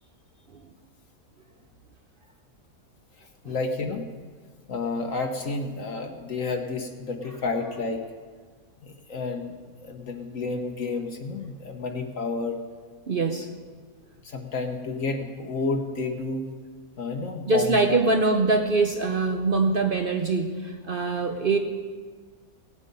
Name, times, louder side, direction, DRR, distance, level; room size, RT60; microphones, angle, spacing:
voice 1, 3.4-4.0 4.7-8.0 8.8-12.6 14.2-16.5 17.0-18.0, left 3 dB, 55° left, 5 dB, 1.3 m, -30 dB
voice 2, 13.1-13.5 17.5-21.6, right 3 dB, 50° right, 5 dB, 0.6 m, -23 dB
17.5 x 8.3 x 5.4 m, 1.5 s
omnidirectional pair, 1.7 m